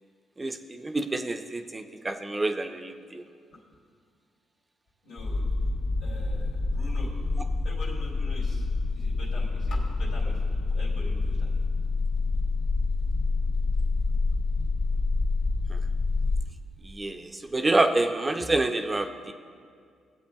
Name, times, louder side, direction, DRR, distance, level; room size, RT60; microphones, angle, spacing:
voice 1, 0.4-3.2 15.7-15.8 16.8-19.3, right 2 dB, 20° right, 6 dB, 0.5 m, -27 dB
voice 2, 5.0-5.5 6.0-7.1 7.6-8.7 9.0-11.5, left 1 dB, 85° left, -4 dB, 2.8 m, -44 dB
sound 1, 5.2-16.4, left 3 dB, 45° left, 1.9 m, -27 dB
20.0 x 7.9 x 2.3 m, 2.2 s
cardioid pair, 90°, 0 cm